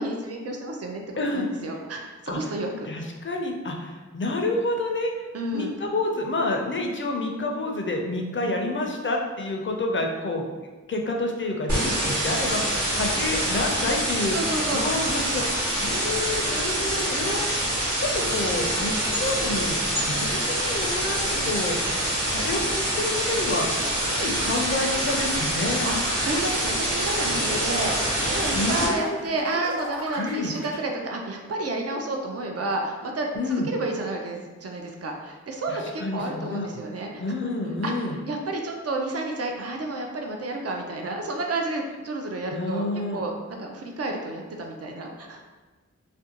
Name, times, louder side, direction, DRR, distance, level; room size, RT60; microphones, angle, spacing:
voice 1, 0.0-1.0 1.3-2.9 5.3-5.7 14.3-14.8 25.9-37.2 37.8-42.9 43.1-45.6, right 2 dB, 55° right, 2 dB, 0.4 m, -31 dB
voice 2, 1.2-1.5 2.3-2.4 2.9-5.1 5.5-10.5 10.9-14.4 14.7-17.6 18.0-21.8 22.3-23.8 24.1-25.9 28.5-29.2 30.2-30.5 33.3-33.7 35.7-36.7 37.2-38.1 42.5-43.2, left 2 dB, 40° left, 1 dB, 0.4 m, -28 dB
sound 1, 11.7-28.9, right 1 dB, 80° right, 0.9 m, -26 dB
sound 2, 21.7-30.7, right 1 dB, 40° right, 0.9 m, -39 dB
2.5 x 2.1 x 2.8 m, 1.3 s
wide cardioid pair, 65°, 29 cm